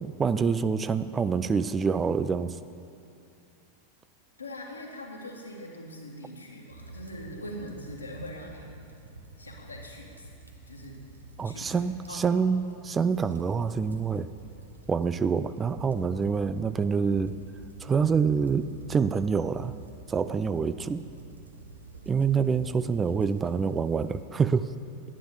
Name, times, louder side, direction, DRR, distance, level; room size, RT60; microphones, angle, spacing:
voice 1, 0.0-2.6 11.4-14.3 14.9-17.4 17.8-19.7 20.1-21.0 22.1-24.7, right 5 dB, 20° right, 13 dB, 0.3 m, -26 dB
voice 2, 4.4-8.7 9.4-10.3 10.7-11.0 11.4-12.5, left 1 dB, 80° left, -1 dB, 1.9 m, -42 dB
sound 1, 6.7-24.2, right 2 dB, 80° right, 1.0 m, -48 dB
11.0 x 9.6 x 6.6 m, 2.5 s
figure-of-eight pair, 90°, 0 cm